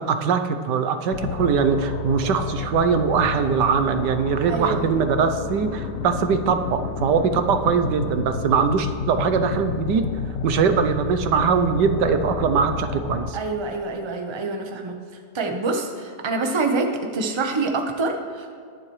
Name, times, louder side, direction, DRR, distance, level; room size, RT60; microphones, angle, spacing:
voice 1, 0.0-10.1 10.4-13.4, right 6 dB, 80° right, 8 dB, 1.4 m, -21 dB
sound 1, 1.1-13.3, left 6 dB, 65° left, 0.8 m, -31 dB
voice 2, 4.5-4.9 13.3-15.0 15.3-18.5, right 3 dB, 20° right, 3 dB, 0.8 m, -26 dB
21.0 x 7.4 x 3.2 m, 2.2 s
omnidirectional pair, 1.9 m